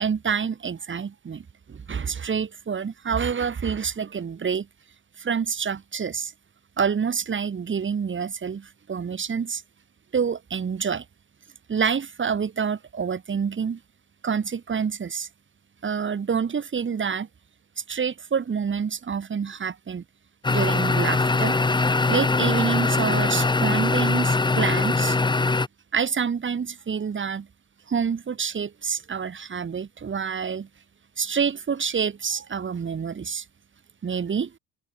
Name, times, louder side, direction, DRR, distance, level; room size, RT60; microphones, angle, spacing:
voice 1, 0.0-4.7 5.2-6.3 6.8-9.6 10.1-11.1 11.7-13.8 14.2-15.3 15.8-17.3 17.8-20.0 20.5-21.6 22.1-25.2 25.9-27.5 27.9-30.7 31.2-33.5 34.0-34.5, right 6 dB, 25° right, 1.8 m, -27 dB
sound 1, 20.4-25.7, left 3 dB, 10° left, 0.8 m, -22 dB
supercardioid pair, 95°, 43 cm